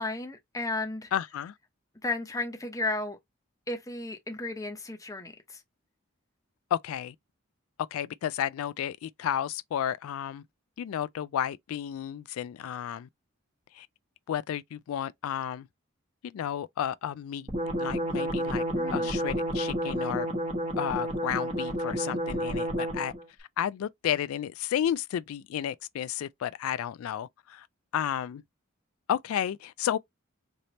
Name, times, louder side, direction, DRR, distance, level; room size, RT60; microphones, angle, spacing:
voice 1, 0.0-1.1 2.0-3.2 3.7-5.6 18.8-19.1, left 2 dB, 15° left, 0.8 m, -34 dB
voice 2, 1.1-1.5 6.7-7.1 7.9-10.4 10.8-13.1 13.7-13.9 14.3-15.7 16.2-17.5 17.8-18.6 18.9-20.3 20.8-23.1 23.6-27.7 27.9-28.4 29.1-30.0, left 10 dB, 85° left, 0.3 m, -32 dB
sound 1, 17.5-23.2, equal, 30° right, 1.1 m, -30 dB
3.3 x 2.8 x 4.0 m
head